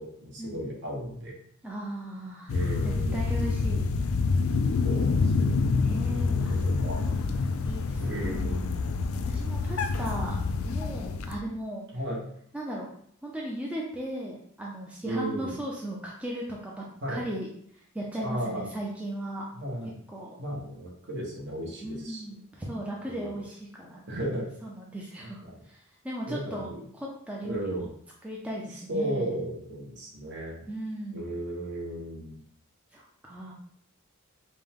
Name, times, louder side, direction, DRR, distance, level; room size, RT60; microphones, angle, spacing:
voice 1, 0.0-1.4 2.5-3.2 4.8-7.0 8.0-8.8 11.9-12.2 15.0-15.6 17.0-17.2 18.2-18.7 19.5-19.9 20.4-22.2 23.1-23.4 24.1-24.5 25.2-25.6 26.3-26.8 27.4-27.9 28.9-30.7 31.1-32.4, right 1 dB, 55° right, -2 dB, 1.2 m, -35 dB
voice 2, 1.6-2.5 2.8-3.8 5.8-7.4 7.6-8.7 9.3-11.8 12.5-12.9 13.2-17.5 17.9-19.5 20.1-20.4 21.8-24.3 24.6-25.4 25.7-25.8 26.0-27.9 28.2-29.4 30.7-31.3 32.9-33.5, right 1 dB, 5° right, -3 dB, 0.5 m, -37 dB
sound 1, 2.5-11.4, left 4 dB, 75° left, 0.4 m, -27 dB
5.1 x 2.2 x 3.6 m, 0.66 s
head